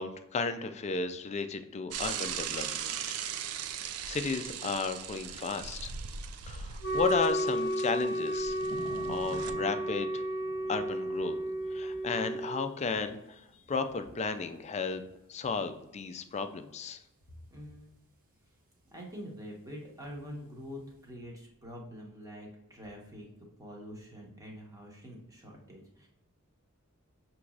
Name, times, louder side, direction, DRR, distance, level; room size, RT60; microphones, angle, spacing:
voice 1, 0.0-3.2 4.1-5.9 6.5-8.6 9.1-10.2 10.7-11.4 11.7-13.4 13.7-15.0 15.3-17.0, left 4 dB, 30° left, 9 dB, 0.4 m, -34 dB
Bicycle / Mechanisms, 1.9-9.5, right 8 dB, 80° right, 0.4 m, -39 dB
sound 1, 2.5-3.8 4.2-4.3 5.0-6.3 6.7-21.1, right 1 dB, 40° right, 0.8 m, -53 dB
Wind instrument woodwind instrument, 6.8-12.7, right 1 dB, 45° left, 0.8 m, -32 dB
voice 2, 17.5-18.0 18.9-23.3 23.6-26.1, equal, 15° right, -1 dB, 1.1 m, -45 dB
6.0 x 3.0 x 2.4 m, 0.89 s
head